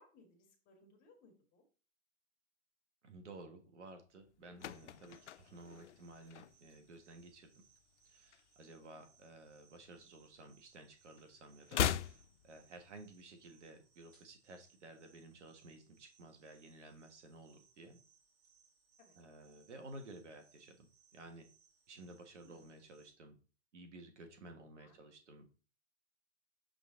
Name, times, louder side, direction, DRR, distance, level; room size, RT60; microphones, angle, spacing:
voice 1, 0.0-1.6 8.6-8.8 19.0-19.2 22.4-22.6 24.8-25.0, left 2 dB, 25° left, 2 dB, 1.6 m, -65 dB
voice 2, 3.0-7.5 8.0-18.0 19.1-21.5 21.9-23.4 23.7-25.6, right 2 dB, 85° right, 6 dB, 1.6 m, -54 dB
sound 1, 4.2-6.9 7.2-7.5 7.8-9.2 9.5-10.9 11.1-13.2 13.5-13.6, left 10 dB, 85° left, 0.5 m, -40 dB
sound 2, 4.6-23.1, right 6 dB, 30° right, 2.9 m, -71 dB
7.1 x 3.9 x 3.8 m, 0.37 s
hypercardioid pair, 140°, 35 cm